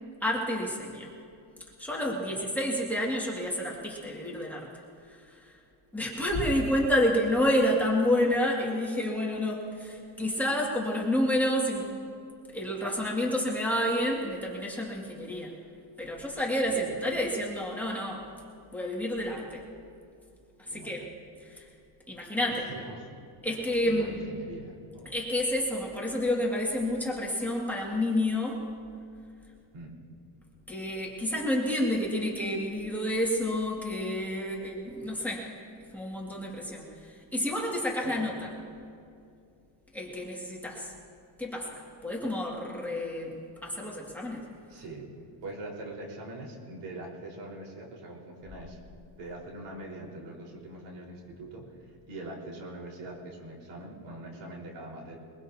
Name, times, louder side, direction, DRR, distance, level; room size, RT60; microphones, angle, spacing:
voice 1, 0.2-1.1 1.8-4.7 5.4-5.5 5.9-11.9 12.5-15.5 16.0-18.3 18.7-19.6 20.6-21.1 21.4-21.7 22.1-22.7 23.4-24.2 25.0-28.6 30.7-35.5 35.9-38.5 39.9-40.9 41.4-43.3 43.6-44.5, left 1 dB, 5° left, -4 dB, 2.3 m, -29 dB
voice 2, 2.1-2.4 16.6-17.0 20.7-21.1 22.5-23.2 23.5-25.0 29.7-29.9 38.0-38.3 44.7-48.8 49.2-55.2, right 2 dB, 80° right, -2 dB, 4.8 m, -43 dB
22.5 x 22.0 x 2.9 m, 2.4 s
cardioid pair, 150°, 49 cm